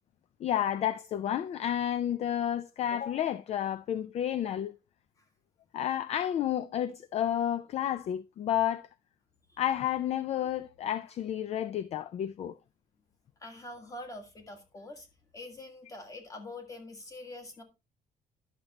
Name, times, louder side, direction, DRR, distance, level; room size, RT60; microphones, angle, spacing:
voice 1, 0.4-4.7 5.7-8.9 9.6-12.5, left 10 dB, 45° left, 0.4 m, -31 dB
voice 2, 13.4-15.1 15.3-17.6, left 2 dB, 20° left, 1.7 m, -44 dB
10.5 x 6.5 x 2.9 m
cardioid pair, 165°, 15 cm